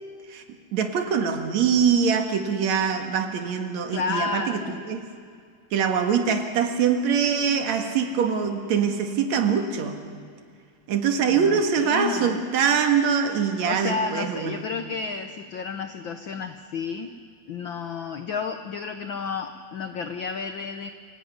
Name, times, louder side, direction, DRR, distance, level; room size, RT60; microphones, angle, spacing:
voice 1, 0.7-5.1 5.7-10.0 10.9-14.6, right 6 dB, 65° right, 6 dB, 2.8 m, -23 dB
voice 2, 3.9-4.8 11.3-12.4 13.7-17.1 17.5-20.9, left 5 dB, 90° left, 8 dB, 1.0 m, -31 dB
27.0 x 17.5 x 9.6 m, 2.1 s
omnidirectional pair, 3.5 m